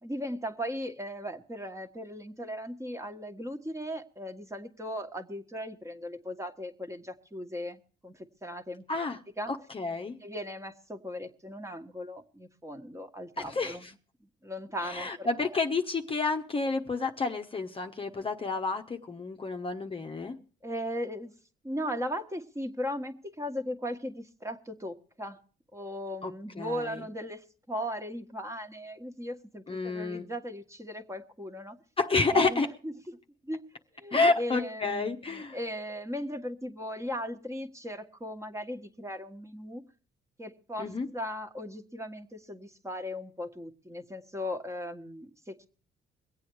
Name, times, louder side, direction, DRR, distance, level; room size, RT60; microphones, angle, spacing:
voice 1, 0.0-9.1 9.4-9.5 10.2-13.8 14.2-15.6 20.6-21.3 21.6-25.4 25.7-31.8 32.3-32.9 33.4-33.6 33.9-39.8 40.4-45.7, equal, 15° right, 1.5 m, -38 dB
voice 2, 9.5-10.2 13.4-13.9 14.8-20.4 26.2-26.3 26.6-27.0 29.7-30.3 32.0-32.7 34.1-35.6 40.8-41.1, left 3 dB, 30° left, 1.0 m, -29 dB
22.5 x 8.4 x 4.7 m
cardioid pair, 90°, 20 cm